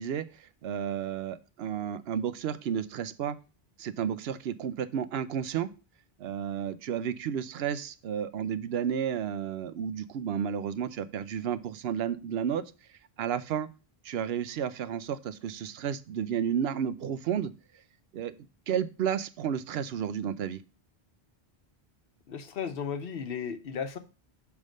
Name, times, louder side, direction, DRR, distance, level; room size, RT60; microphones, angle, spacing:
voice 1, 0.0-3.4 3.8-5.7 6.2-12.6 13.2-13.7 14.0-17.5 18.1-18.3 18.7-20.6, right 8 dB, 80° right, 13 dB, 0.8 m, -32 dB
voice 2, 22.3-24.0, left 7 dB, 65° left, 9 dB, 0.9 m, -35 dB
6.5 x 3.6 x 6.2 m, 0.33 s
omnidirectional pair, 1.0 m